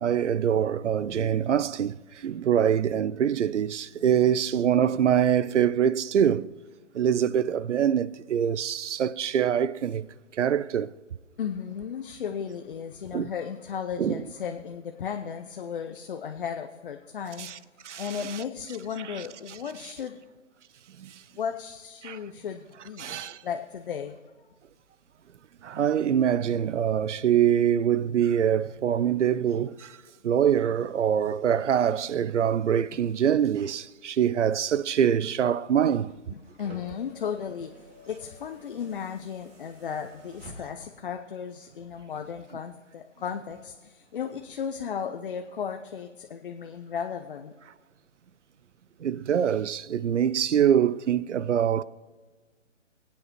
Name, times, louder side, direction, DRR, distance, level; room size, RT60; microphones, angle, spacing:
voice 1, 0.0-6.5 6.9-10.1 10.3-10.9 13.1-13.3 14.0-14.2 17.4-17.6 17.8-18.4 19.1-19.2 21.0-21.2 22.0-22.2 23.0-23.4 25.6-30.0 30.2-36.1 49.0-51.8, right 9 dB, 70° right, 0.5 m, -24 dB
voice 2, 4.0-4.4 11.4-17.5 18.0-20.2 21.4-23.2 23.4-24.2 36.3-47.5, left 7 dB, 45° left, 0.6 m, -35 dB
sound 1, 36.0-41.0 42.2-42.3, right 1 dB, 50° right, 2.9 m, -50 dB
24.5 x 8.6 x 3.0 m
figure-of-eight pair, 140°, 38 cm